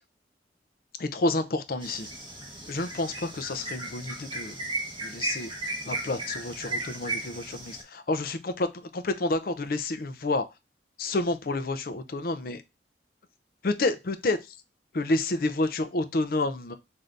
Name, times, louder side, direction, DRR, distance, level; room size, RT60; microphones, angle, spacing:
voice 1, 1.0-2.1 2.6-4.6 5.0-5.5 5.8-10.4 11.0-12.6 13.6-14.6 14.9-16.7, left 2 dB, 50° left, 0.5 m, -29 dB
sound 1, 1.8-7.8, right 2 dB, 25° right, 1.3 m, -35 dB
3.8 x 2.7 x 3.3 m
head